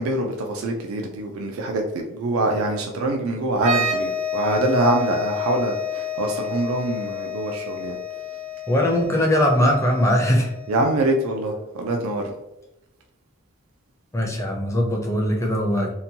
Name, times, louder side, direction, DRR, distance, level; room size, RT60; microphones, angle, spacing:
voice 1, 0.0-1.8 2.1-8.0 10.7-12.2, right 2 dB, 90° right, 2 dB, 0.4 m, -24 dB
sound 1, 3.5-11.1, left 5 dB, 60° right, 0.7 m, -30 dB
voice 2, 8.7-10.5 14.1-15.9, equal, 15° left, 0 dB, 0.4 m, -20 dB
2.8 x 2.1 x 2.7 m, 0.96 s
head